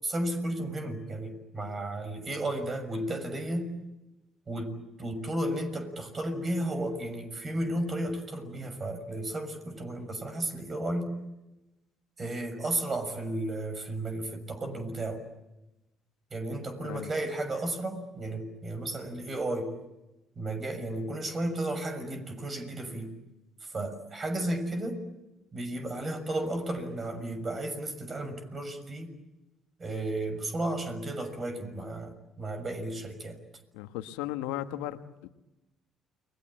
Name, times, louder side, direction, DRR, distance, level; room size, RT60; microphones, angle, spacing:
voice 1, 0.0-3.7 4.5-11.2 12.2-15.2 16.3-19.7 20.3-23.1 23.6-25.0 25.5-29.1 29.8-33.4, right 1 dB, 35° right, 8 dB, 6.6 m, -33 dB
voice 2, 33.7-35.3, left 13 dB, 80° left, 9 dB, 1.3 m, -36 dB
30.0 x 21.5 x 9.0 m, 1.0 s
hypercardioid pair, 55°, 0 cm